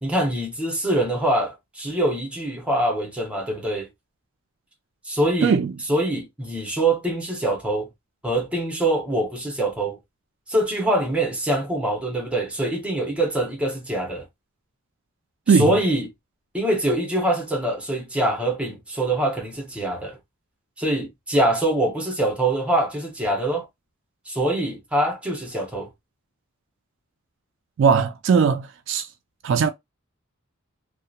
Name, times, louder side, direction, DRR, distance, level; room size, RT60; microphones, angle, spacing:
voice 1, 0.0-3.9 5.0-5.6 5.9-7.9 8.2-10.0 10.5-14.3 15.5-16.1 16.5-20.2 20.8-23.7 24.3-25.9, right 1 dB, 5° right, 0.8 m, -24 dB
voice 2, 5.4-5.7 15.5-15.8 27.8-29.1 29.4-29.7, right 6 dB, 60° right, 0.3 m, -19 dB
2.8 x 2.1 x 2.3 m
head